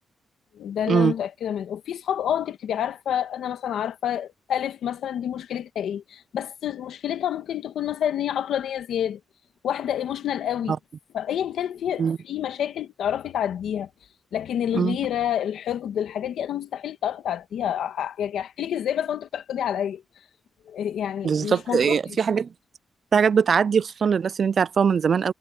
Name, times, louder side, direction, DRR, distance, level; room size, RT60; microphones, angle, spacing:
voice 1, 0.5-9.2 9.6-10.8 11.1-13.9 14.3-20.0 20.7-22.2, left 10 dB, 90° left, 1.7 m, -28 dB
voice 2, 21.2-22.5 23.1-25.3, right 6 dB, 50° right, 0.3 m, -21 dB
cardioid pair, 110°, 0 cm